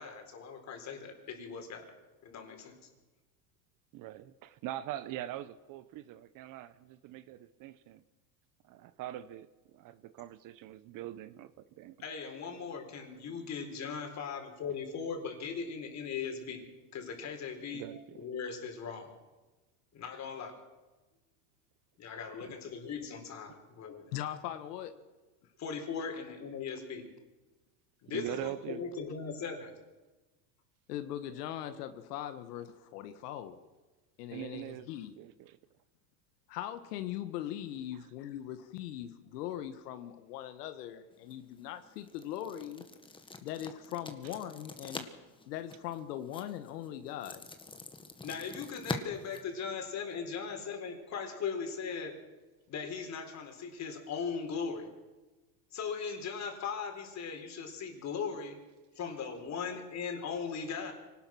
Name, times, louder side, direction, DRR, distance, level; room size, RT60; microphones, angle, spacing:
voice 1, 0.0-1.9 2.2-2.8 12.0-16.6 16.9-19.2 19.9-20.6 22.0-24.1 25.6-27.1 28.0-29.7 48.2-52.2 52.7-55.0 55.7-58.6 58.9-60.9, left 6 dB, 35° left, 4 dB, 4.5 m, -39 dB
voice 2, 3.9-8.0 8.6-12.0 17.7-18.2 28.1-28.9 34.3-34.9 35.2-35.6 44.2-44.3, right 13 dB, 45° right, 15 dB, 0.9 m, -43 dB
voice 3, 24.1-24.9 30.9-33.6 34.2-35.1 36.5-42.8 43.4-45.1 45.5-47.4, left 11 dB, 75° left, 9 dB, 1.7 m, -40 dB
sound 1, 41.1-50.2, left 3 dB, 10° left, 1.7 m, -45 dB
24.5 x 18.5 x 6.1 m, 1.2 s
supercardioid pair, 130°, 47 cm